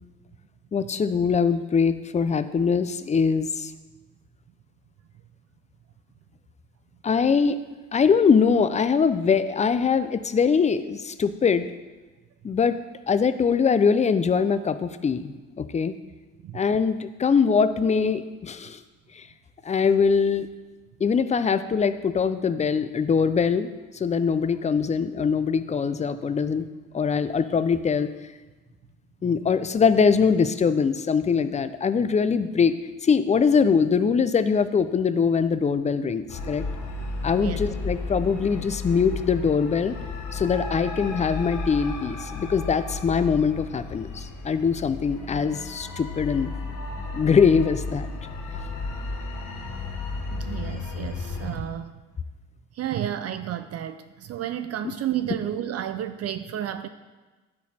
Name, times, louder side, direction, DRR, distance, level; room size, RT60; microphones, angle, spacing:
voice 1, 0.7-3.7 7.0-7.6 7.9-11.7 12.4-12.8 13.1-15.9 16.5-18.8 19.2-19.3 19.6-20.5 21.0-26.7 26.9-28.1 29.2-32.7 33.0-36.6 37.2-40.0 40.3-46.5 47.1-48.1 54.8-54.9, left 6 dB, 25° left, 12 dB, 0.4 m, -22 dB
sound 1, 36.3-51.6, left 3 dB, 75° left, 1.1 m, -33 dB
voice 2, 50.3-51.9 52.7-56.9, right 11 dB, 55° right, 10 dB, 0.4 m, -31 dB
11.0 x 4.2 x 4.2 m, 1.2 s
cardioid pair, 90°, 30 cm